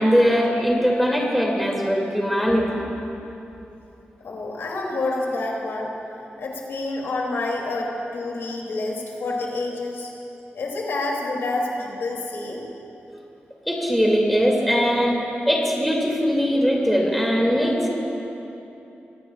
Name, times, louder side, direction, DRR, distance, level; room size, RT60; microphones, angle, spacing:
voice 1, 0.0-2.8 13.7-15.2 15.5-17.9, equal, ahead, -3 dB, 2.4 m, -20 dB
voice 2, 4.2-5.9 6.4-10.1 10.5-12.6, left 2 dB, 85° left, -2 dB, 2.6 m, -28 dB
24.0 x 18.0 x 2.4 m, 3.0 s
wide cardioid pair, 140°, 4 cm